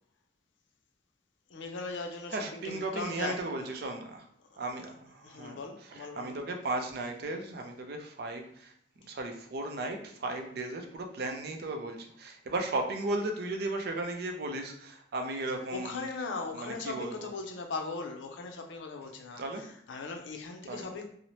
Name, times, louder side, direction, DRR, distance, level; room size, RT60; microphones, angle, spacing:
voice 1, 1.5-3.7 4.5-4.9 5.2-6.4 15.7-21.1, left 3 dB, 85° left, 4 dB, 0.5 m, -39 dB
voice 2, 2.3-4.3 4.6-5.6 5.9-8.7 9.0-16.1 16.5-17.3 19.4-19.6 20.7-20.9, right 2 dB, 60° right, 4 dB, 0.4 m, -35 dB
2.7 x 2.0 x 3.0 m, 0.66 s
head